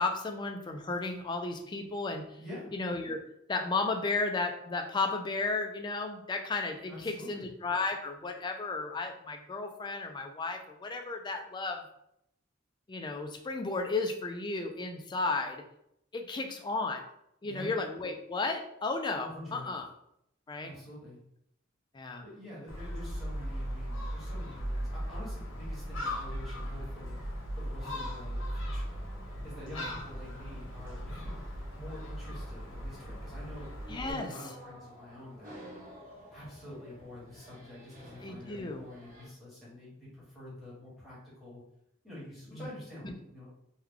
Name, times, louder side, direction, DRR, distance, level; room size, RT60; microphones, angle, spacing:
voice 1, 0.0-2.2 2.7-3.2 3.5-11.8 12.9-15.6 16.1-17.0 17.4-19.9 20.5-20.7 21.9-22.2 27.9-28.1 29.7-29.9 33.9-34.3 38.2-38.8 42.5-42.7 43.0-43.1, left 3 dB, 20° left, 5 dB, 0.3 m, -34 dB
voice 2, 2.4-2.7 6.9-7.5 17.4-17.7 19.2-19.7 20.6-21.2 22.2-27.2 27.5-29.0 29.4-33.7 33.9-35.6 36.3-41.6 42.0-43.5, left 1 dB, ahead, -9 dB, 1.3 m, -47 dB
Gull seagull, 22.7-34.1, equal, 75° left, 1.1 m, -38 dB
sound 1, 30.0-39.3, equal, 45° right, 1.0 m, -53 dB
3.1 x 2.2 x 3.6 m, 0.77 s
head